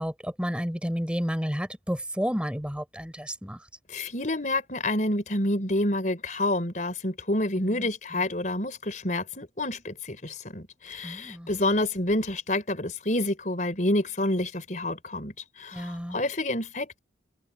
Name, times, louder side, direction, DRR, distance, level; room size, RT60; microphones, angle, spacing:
voice 1, 0.0-3.7 7.6-8.2 11.0-11.5 15.7-16.2, equal, 5° right, 5.7 m, -31 dB
voice 2, 3.9-17.0, left 1 dB, 45° left, 4.4 m, -28 dB
head